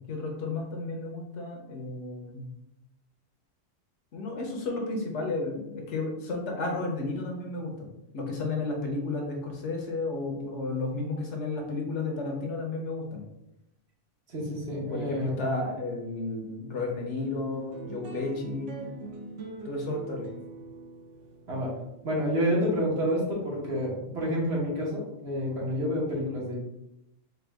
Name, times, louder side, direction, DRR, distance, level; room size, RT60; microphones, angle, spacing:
voice 1, 0.1-2.5 4.1-13.2 14.9-18.8 19.6-20.3, left 3 dB, 65° left, 1 dB, 1.0 m, -32 dB
voice 2, 14.3-15.3 21.5-21.7 22.0-26.5, equal, 55° right, -4 dB, 1.3 m, -29 dB
sound 1, 17.2-23.8, right 3 dB, 70° right, 1.0 m, -43 dB
4.4 x 2.3 x 3.4 m, 0.87 s
omnidirectional pair, 1.3 m